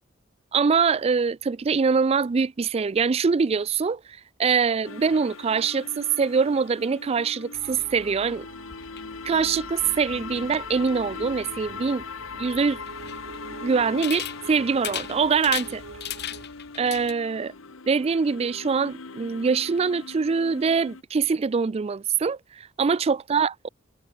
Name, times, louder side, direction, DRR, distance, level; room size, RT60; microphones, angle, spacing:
voice 1, 0.5-4.0 4.4-8.5 9.2-12.0 12.4-12.8 13.6-15.8 16.8-17.5 17.9-23.7, right 5 dB, 30° right, 0.4 m, -24 dB
sound 1, 4.8-21.0, left 4 dB, 85° left, 1.3 m, -40 dB
sound 2, 7.5-16.5, right 4 dB, 80° right, 0.6 m, -46 dB
sound 3, 8.7-17.1, left 11 dB, 55° left, 1.3 m, -39 dB
head